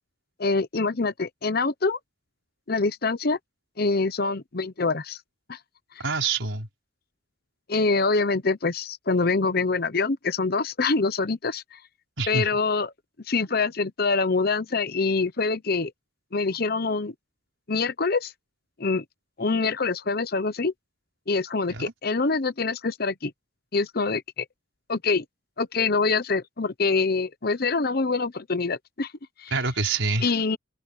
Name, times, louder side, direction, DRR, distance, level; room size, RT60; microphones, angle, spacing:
voice 1, 0.4-2.0 2.7-3.4 3.8-5.2 5.5-5.6 7.7-11.8 12.3-12.9 13.3-15.9 16.3-17.1 17.7-18.3 18.8-19.0 19.4-20.7 21.3-23.3 23.7-24.4 24.9-25.2 25.6-29.1 29.4-29.5 30.2-30.6, left 4 dB, 50° left, 0.9 m, -25 dB
voice 2, 6.0-6.7 12.2-12.5 21.7-21.9 29.5-30.3, right 4 dB, 80° right, 4.9 m, -26 dB
open air
head